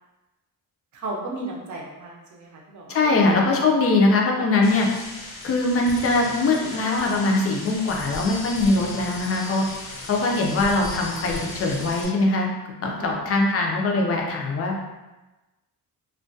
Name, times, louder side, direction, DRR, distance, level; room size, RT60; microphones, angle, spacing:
voice 1, 0.9-3.4 12.8-13.2, right 2 dB, 50° right, -2 dB, 0.5 m, -35 dB
voice 2, 2.9-4.9 5.4-9.6 10.1-12.5 12.8-14.7, left 2 dB, 40° left, 0 dB, 0.4 m, -21 dB
sound 1, 4.6-12.1, left 2 dB, 85° left, 0.7 m, -36 dB
2.3 x 2.1 x 2.5 m, 1.1 s
cardioid pair, 135°, 37 cm